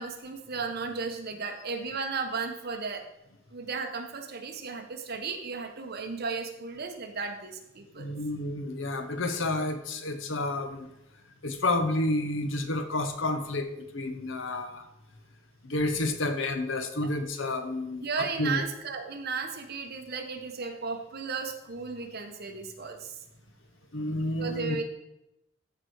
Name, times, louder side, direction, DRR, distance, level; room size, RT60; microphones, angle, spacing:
voice 1, 0.0-3.0 3.5-8.1 14.5-14.6 18.0-23.1 24.4-24.8, right 4 dB, 55° right, 4 dB, 1.3 m, -35 dB
voice 2, 8.0-10.9 11.4-14.8 15.6-18.1 18.4-18.6 23.9-24.8, left 2 dB, 70° left, 8 dB, 1.0 m, -30 dB
14.0 x 4.9 x 4.8 m, 0.88 s
head